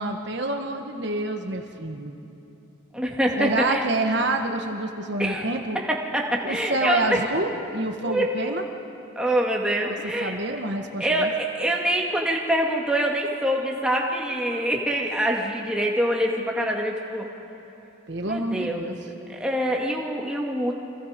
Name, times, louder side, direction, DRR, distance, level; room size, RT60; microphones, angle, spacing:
voice 1, 0.0-2.2 3.4-5.8 6.4-8.6 9.8-11.3 18.1-19.0, right 2 dB, 55° right, 4 dB, 1.3 m, -28 dB
voice 2, 2.9-3.8 5.2-5.5 5.7-7.3 8.0-8.5 9.2-10.3 11.0-17.3 18.3-19.0 19.3-20.7, right 1 dB, 5° right, -1 dB, 2.2 m, -25 dB
30.0 x 25.0 x 5.2 m, 2.9 s
head